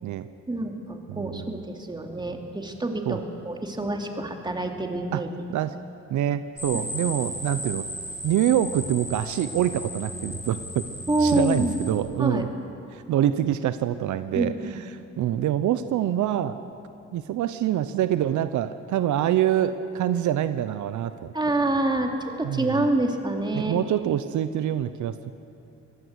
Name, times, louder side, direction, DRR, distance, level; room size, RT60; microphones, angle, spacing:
voice 1, 0.5-5.3 11.1-11.7 12.2-12.4 14.3-14.8 21.3-22.1 22.4-23.8, right 2 dB, 15° right, 3 dB, 2.7 m, -26 dB
voice 2, 1.1-1.6 3.1-3.2 5.1-5.2 5.5-5.8 6.1-7.9 8.2-10.9 11.2-12.5 12.9-16.6 17.1-21.3 22.4-22.8 23.5-25.3, right 11 dB, 75° right, 12 dB, 0.8 m, -26 dB
sound 1, 6.6-11.9, left 1 dB, 10° left, 6.2 m, -35 dB
24.0 x 17.5 x 8.1 m, 2.7 s
cardioid pair, 90°, 30 cm